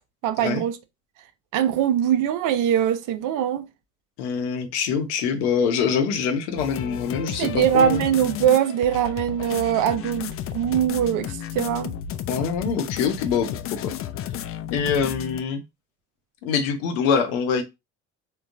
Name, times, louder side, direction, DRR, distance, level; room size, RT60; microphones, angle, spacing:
voice 1, 0.2-0.8 1.5-3.7 7.3-11.9, right 9 dB, 60° right, 0.6 m, -22 dB
voice 2, 4.2-8.0 12.3-13.9 14.7-15.6 16.4-17.6, left 6 dB, 75° left, 0.8 m, -24 dB
sound 1, 6.6-15.4, left 10 dB, 40° left, 0.4 m, -33 dB
3.8 x 2.2 x 2.5 m
hypercardioid pair, 55°, 36 cm